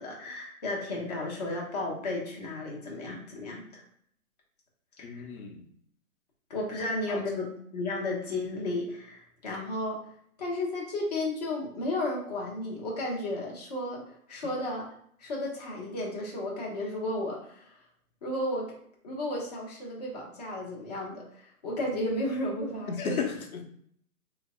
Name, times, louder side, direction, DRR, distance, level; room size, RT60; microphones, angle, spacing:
voice 1, 0.0-3.8 5.0-5.3 6.5-10.0 10.4-14.0 14.3-14.9 15.2-17.7 18.2-18.7 19.0-23.3, left 1 dB, 30° left, -2 dB, 0.7 m, -33 dB
voice 2, 5.0-5.6 7.1-7.2 22.9-23.7, left 6 dB, 70° left, 3 dB, 0.9 m, -34 dB
3.2 x 2.1 x 3.6 m, 0.66 s
hypercardioid pair, 160°, 44 cm